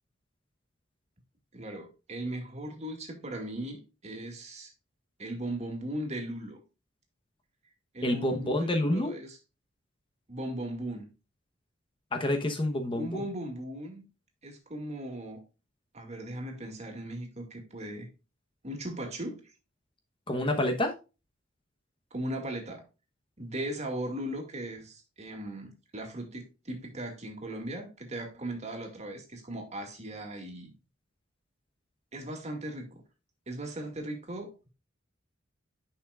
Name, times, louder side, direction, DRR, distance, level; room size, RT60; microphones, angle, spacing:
voice 1, 1.5-4.7 5.2-6.6 7.9-9.4 10.3-11.1 13.0-14.0 14.4-15.4 15.9-18.1 18.6-19.4 22.1-22.8 23.4-30.7 32.1-33.0 33.5-34.5, right 1 dB, 35° right, 2.2 m, -38 dB
voice 2, 8.0-9.1 12.1-13.2 20.3-20.9, left 1 dB, 25° left, 1.0 m, -28 dB
10.5 x 5.7 x 2.4 m
head